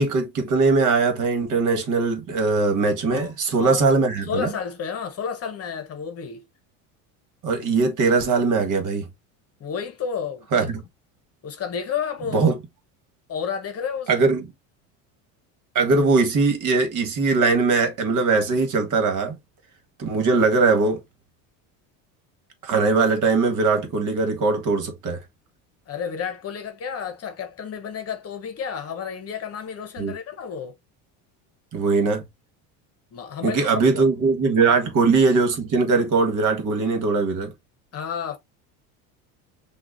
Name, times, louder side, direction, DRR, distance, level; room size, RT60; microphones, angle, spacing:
voice 1, 0.0-4.5 7.4-9.1 10.5-10.8 12.3-12.6 14.1-14.4 15.7-19.4 20.0-21.0 22.6-25.2 30.0-30.1 31.7-32.2 33.4-37.5, right 4 dB, 50° right, 1.6 m, -20 dB
voice 2, 3.1-3.8 4.2-6.5 9.6-10.7 11.4-12.5 13.3-14.2 25.9-30.7 33.1-34.0 34.7-34.8 37.9-38.4, left 7 dB, 35° left, 1.0 m, -31 dB
5.9 x 2.5 x 2.5 m
supercardioid pair, 110°, 40 cm